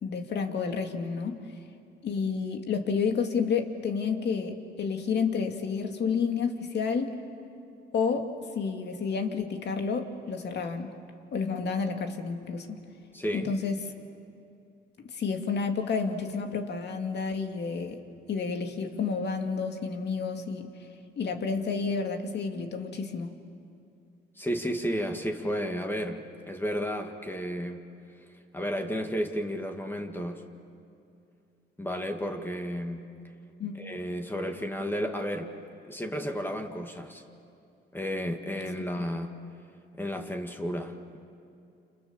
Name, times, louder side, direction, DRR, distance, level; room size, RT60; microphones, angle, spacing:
voice 1, 0.0-1.4 2.0-7.2 7.9-8.3 8.5-10.9 11.3-12.8 13.3-13.8 15.0-18.0 18.3-20.7 21.2-23.3 33.6-33.8, left 5 dB, 60° left, 5 dB, 2.5 m, -30 dB
voice 2, 13.1-13.5 24.4-27.9 28.5-30.4 31.8-33.1 33.8-35.5 35.8-37.2 37.9-39.4 39.9-41.2, equal, 10° left, 4 dB, 2.1 m, -32 dB
29.0 x 28.0 x 7.1 m, 2.6 s
cardioid pair, 90°, 20 cm